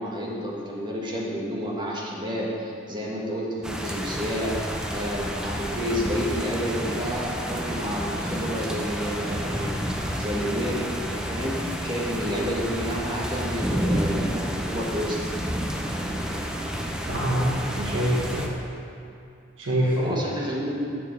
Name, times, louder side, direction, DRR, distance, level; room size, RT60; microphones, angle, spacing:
voice 1, 0.0-9.7 10.1-15.2 20.0-20.8, equal, 25° right, -4 dB, 1.5 m, -30 dB
sound 1, 3.6-18.5, equal, 5° right, 0.6 m, -30 dB
voice 2, 17.1-18.5 19.6-20.3, right 1 dB, 70° right, -5 dB, 1.5 m, -25 dB
7.3 x 6.9 x 5.3 m, 2.6 s
head